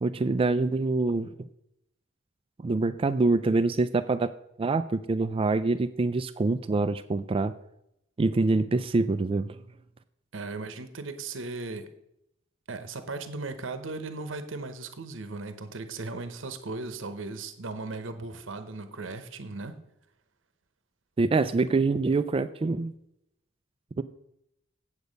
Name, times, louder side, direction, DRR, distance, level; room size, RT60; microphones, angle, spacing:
voice 1, 0.0-1.5 2.6-4.3 4.6-7.5 8.2-9.6 21.2-22.9 24.0-24.1, right 3 dB, 30° right, 12 dB, 0.3 m, -25 dB
voice 2, 10.3-11.9 12.7-19.8, right 3 dB, 75° right, 10 dB, 0.9 m, -37 dB
8.3 x 8.0 x 5.2 m, 0.80 s
head